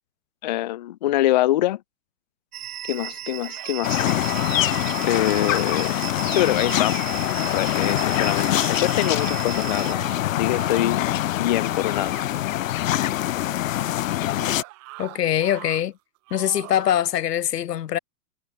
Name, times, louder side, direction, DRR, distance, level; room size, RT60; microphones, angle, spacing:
voice 1, 0.4-1.8 2.9-4.1 5.0-6.0 6.3-7.0 7.5-10.0 10.3-11.1 11.4-12.1, left 14 dB, 30° left, 0.4 m, -24 dB
sound 1, 2.5-9.9, right 10 dB, 65° right, 1.9 m, -35 dB
sound 2, 3.3-5.7 6.1-7.0 8.3-11.1 11.5-12.5 14.3-15.8 16.3-17.0, right 23 dB, 30° right, 5.3 m, -42 dB
sound 3, 3.8-14.6, left 13 dB, 55° left, 2.2 m, -24 dB
voice 2, 15.0-15.9 16.3-18.0, left 11 dB, 85° left, 0.8 m, -23 dB
hypercardioid pair, 125°, 47 cm